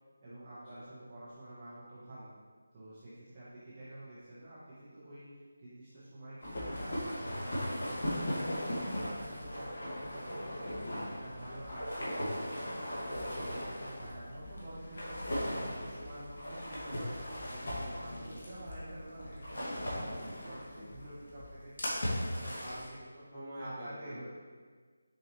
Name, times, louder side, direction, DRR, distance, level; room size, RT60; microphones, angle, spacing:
voice 1, 0.2-2.3 2.7-8.5 9.0-23.3 23.6-24.3, right 1 dB, 15° right, -12 dB, 0.9 m, -49 dB
sound 1, 6.4-22.9, equal, 55° left, 1.7 m, -38 dB
voice 2, 8.6-9.2 20.7-20.9 23.3-24.3, equal, 5° left, -15 dB, 1.3 m, -48 dB
sound 2, 16.0-21.1, right 1 dB, 80° right, 1.1 m, -55 dB
6.7 x 4.6 x 3.0 m, 1.5 s
figure-of-eight pair, 180°, 0 cm